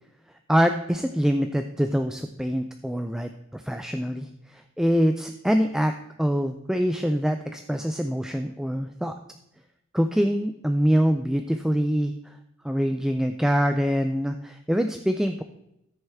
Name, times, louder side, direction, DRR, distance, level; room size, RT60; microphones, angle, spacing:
voice 1, 0.5-9.2 9.9-12.4 12.6-15.4, equal, 5° right, 7 dB, 0.3 m, -25 dB
14.0 x 6.5 x 3.5 m, 0.85 s
head